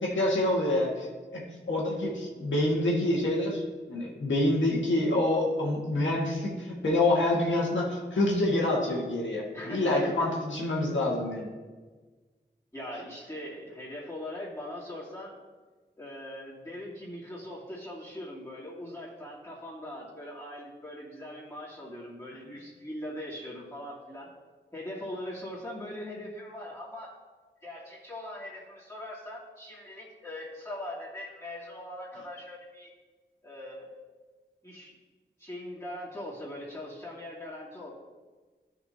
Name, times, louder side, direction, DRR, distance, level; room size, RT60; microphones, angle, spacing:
voice 1, 0.0-3.6 3.9-11.5, left 1 dB, 90° left, -3 dB, 1.8 m, -27 dB
voice 2, 9.5-10.1 12.7-15.4 16.0-24.4 24.7-27.1 27.6-32.9 33.4-34.0 34.6-35.0 35.4-37.9, left 1 dB, 15° left, -7 dB, 2.5 m, -41 dB
13.0 x 5.8 x 2.8 m, 1.4 s
cardioid pair, 50°, 19 cm